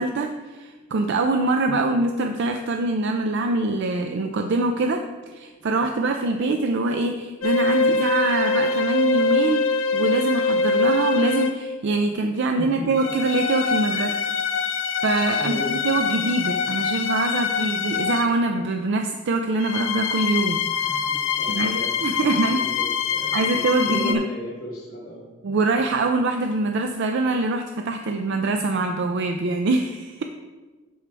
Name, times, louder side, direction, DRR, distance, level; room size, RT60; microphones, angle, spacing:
voice 1, 0.0-5.0 5.3-14.1 15.0-20.6 21.5-22.6 23.3-24.2 25.4-30.2, right 2 dB, 60° right, 5 dB, 0.4 m, -24 dB
sound 1, 7.4-11.8 12.9-18.4 19.6-24.1, left 4 dB, 75° left, 0.6 m, -24 dB
voice 2, 12.6-12.9 13.9-14.2 15.4-15.7 20.7-25.2, equal, 40° left, -12 dB, 2.3 m, -36 dB
12.0 x 4.7 x 3.3 m, 1.3 s
head